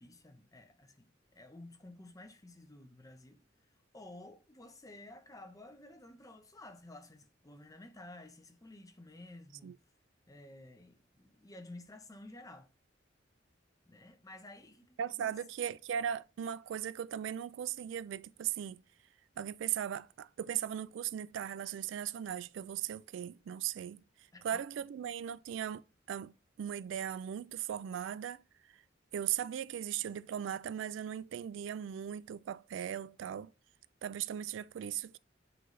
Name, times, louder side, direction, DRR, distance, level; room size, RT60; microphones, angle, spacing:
voice 1, 0.0-3.4 3.9-9.8 10.3-12.7 13.9-15.4 24.3-24.6, left 1 dB, 20° left, 0.7 m, -53 dB
voice 2, 15.0-18.8 19.4-24.0 24.4-25.8 26.1-26.3 26.6-28.4 29.1-33.5 34.0-35.2, right 9 dB, 75° right, 0.3 m, -38 dB
7.7 x 3.8 x 3.2 m
head